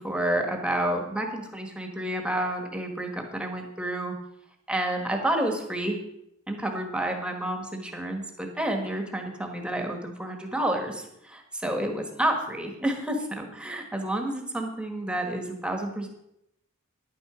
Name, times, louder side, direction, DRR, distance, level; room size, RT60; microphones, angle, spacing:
voice 1, 0.0-4.1 4.7-6.0 6.5-16.1, right 1 dB, 5° right, 3 dB, 1.4 m, -30 dB
10.5 x 8.9 x 5.0 m, 0.80 s
head